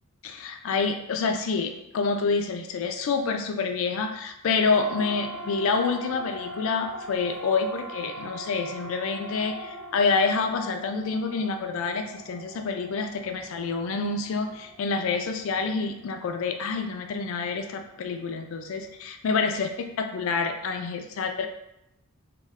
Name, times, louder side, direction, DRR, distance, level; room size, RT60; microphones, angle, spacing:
voice 1, 0.2-21.5, left 4 dB, 65° left, 6 dB, 0.3 m, -27 dB
Siren, 4.7-19.0, right 1 dB, 70° right, 0.5 m, -42 dB
2.3 x 2.2 x 3.4 m, 0.84 s
head